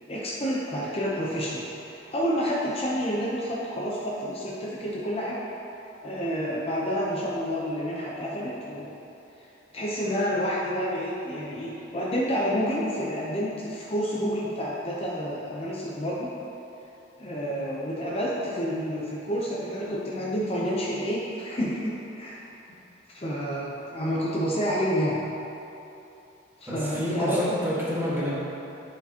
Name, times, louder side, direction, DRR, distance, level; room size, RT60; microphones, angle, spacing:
voice 1, 0.1-5.4 6.0-9.0 9.7-16.3 17.2-22.5 23.1-25.2 26.6-27.6, equal, 30° left, -5 dB, 0.7 m, -29 dB
voice 2, 26.7-28.3, left 1 dB, 10° right, -8 dB, 1.4 m, -28 dB
10.5 x 5.0 x 2.9 m, 3.0 s
head